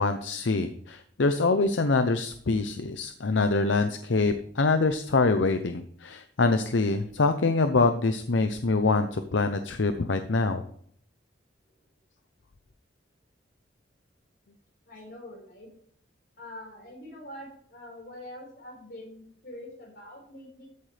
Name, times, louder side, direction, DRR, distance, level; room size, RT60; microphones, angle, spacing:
voice 1, 0.0-10.6, left 3 dB, 80° left, 8 dB, 0.7 m, -25 dB
voice 2, 14.9-15.7 16.4-20.7, left 1 dB, 60° left, -2 dB, 5.1 m, -44 dB
14.0 x 8.7 x 3.4 m, 0.62 s
head